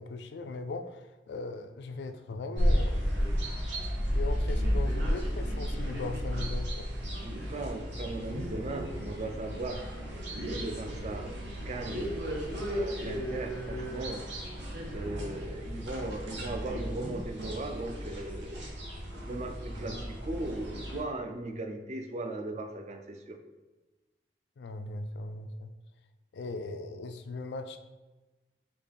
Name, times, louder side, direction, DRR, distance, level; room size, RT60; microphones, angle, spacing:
voice 1, 0.0-3.1 4.0-6.9 24.6-25.7 26.3-27.8, left 3 dB, 70° left, 8 dB, 0.3 m, -39 dB
sound 1, 2.6-21.0, equal, 80° right, 1.0 m, -33 dB
voice 2, 7.4-9.8 10.5-12.1 12.7-14.3 14.9-18.8 19.2-23.4, right 2 dB, 40° right, 4 dB, 0.4 m, -38 dB
5.1 x 2.4 x 3.4 m, 1.2 s
head